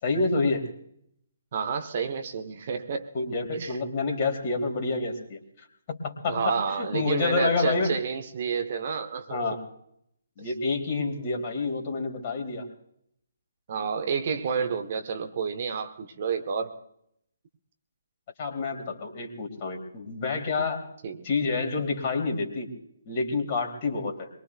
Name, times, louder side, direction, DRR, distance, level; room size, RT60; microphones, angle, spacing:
voice 1, 0.0-0.7 3.1-8.0 9.3-9.6 10.4-12.7 18.4-20.8 21.2-22.7 23.0-24.3, left 3 dB, 30° left, 2 dB, 2.9 m, -28 dB
voice 2, 1.5-3.1 3.5-3.7 6.3-9.4 10.4-10.5 13.7-16.7 21.0-21.3, right 6 dB, 40° right, 6 dB, 1.2 m, -30 dB
23.5 x 22.5 x 2.3 m, 0.73 s
figure-of-eight pair, 135°, 0 cm